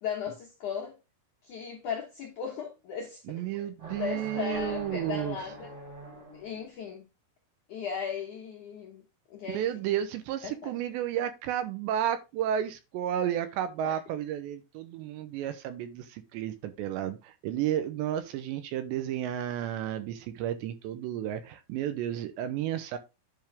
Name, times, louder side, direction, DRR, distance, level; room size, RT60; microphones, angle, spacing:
voice 1, 0.0-1.0 1.4-3.7 4.0-5.7 6.3-7.1 7.7-9.0 9.3-9.7 10.4-10.7 13.8-14.0, left 7 dB, 75° left, 1.8 m, -37 dB
voice 2, 3.3-5.4 9.5-23.0, right 10 dB, 75° right, 2.9 m, -32 dB
sound 1, 3.8-6.7, equal, 20° right, 2.1 m, -43 dB
10.5 x 5.4 x 3.6 m
omnidirectional pair, 5.5 m